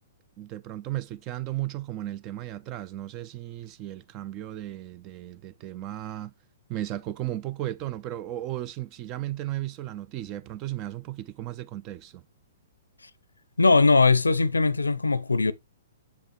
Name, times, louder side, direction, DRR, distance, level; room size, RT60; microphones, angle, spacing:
voice 1, 0.4-6.3 6.7-12.2, right 14 dB, 35° right, 0.4 m, -35 dB
voice 2, 13.6-15.5, left 3 dB, 90° left, 0.5 m, -20 dB
6.8 x 5.4 x 3.1 m
hypercardioid pair, 120°, 0 cm